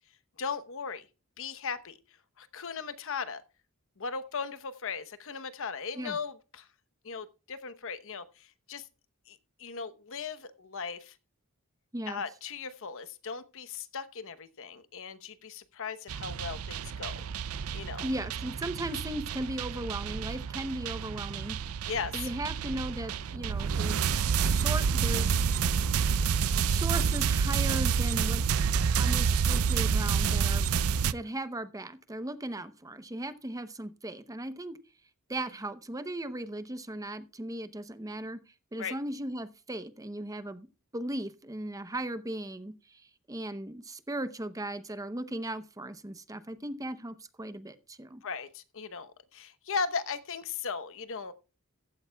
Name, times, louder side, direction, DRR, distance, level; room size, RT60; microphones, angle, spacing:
voice 1, 0.4-1.1 1.4-2.0 2.4-3.4 4.0-6.7 7.0-8.9 9.3-11.2 12.1-17.3 17.7-18.1 21.9-22.3 38.8-38.9 48.2-51.3, left 5 dB, 65° left, 1.0 m, -37 dB
sound 1, 16.1-31.1, right 6 dB, 75° right, 0.5 m, -29 dB
voice 2, 18.0-21.6 22.1-24.0 24.4-25.4 26.7-28.7 28.9-30.7 31.0-34.8 35.3-38.4 38.7-40.7 40.9-43.0 43.3-48.2, right 1 dB, 15° right, 0.7 m, -37 dB
15.0 x 12.5 x 2.3 m
head